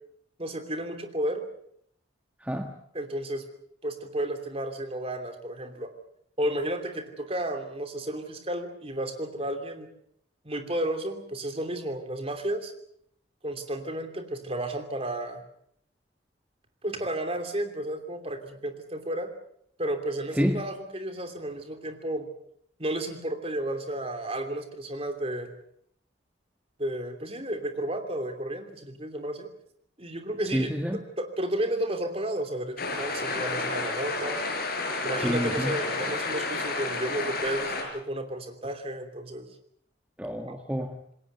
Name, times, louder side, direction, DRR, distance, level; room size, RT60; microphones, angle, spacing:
voice 1, 0.4-1.4 2.9-3.4 3.8-5.9 6.4-9.9 10.4-12.7 13.4-15.4 16.8-19.3 19.8-22.3 22.8-25.5 26.8-29.5 30.0-30.7 31.2-34.4 35.0-39.5 40.5-40.6, right 1 dB, 30° right, 7 dB, 2.9 m, -32 dB
voice 2, 30.5-31.0 35.2-35.7 40.2-41.0, equal, 5° right, 4 dB, 1.3 m, -28 dB
sound 1, 32.8-37.8, left 3 dB, 50° left, 5.6 m, -31 dB
27.5 x 20.5 x 6.8 m, 0.69 s
head